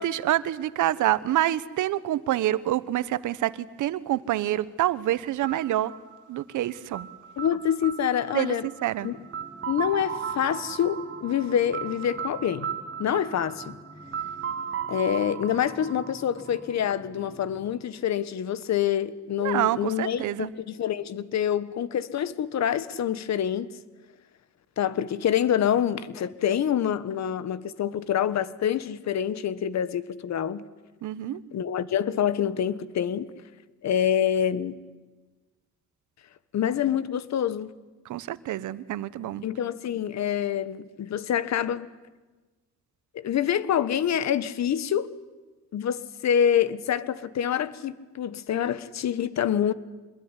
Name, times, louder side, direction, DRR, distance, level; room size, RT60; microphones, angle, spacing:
voice 1, 0.0-5.9 6.3-7.1 8.3-8.5 8.8-9.1 19.4-20.5 31.0-31.4 38.0-39.4, right 13 dB, 80° right, 1.2 m, -27 dB
sound 1, 5.4-17.2, right 7 dB, 45° right, 1.9 m, -37 dB
voice 2, 7.4-8.7 9.0-9.2 9.7-12.7 13.0-13.8 14.9-23.8 24.8-30.6 31.5-33.3 33.8-34.8 36.5-37.7 39.4-41.9 43.1-45.1 45.7-49.7, left 9 dB, 65° left, 1.4 m, -26 dB
sound 2, 9.0-17.7, right 1 dB, 5° right, 7.1 m, -50 dB
26.0 x 21.5 x 9.9 m
cardioid pair, 90°, 30 cm